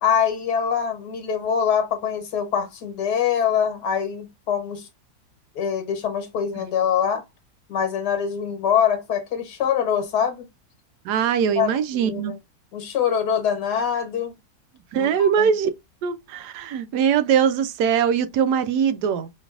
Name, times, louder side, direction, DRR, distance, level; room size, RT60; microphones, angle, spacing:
voice 1, 0.0-4.9 5.5-7.2 7.7-10.5 11.6-12.3 12.7-14.3 14.9-15.5, left 8 dB, 75° left, 1.5 m, -24 dB
voice 2, 11.0-12.3 14.9-15.7 16.0-19.3, right 7 dB, 80° right, 1.2 m, -21 dB
5.2 x 3.0 x 2.3 m
omnidirectional pair, 1.8 m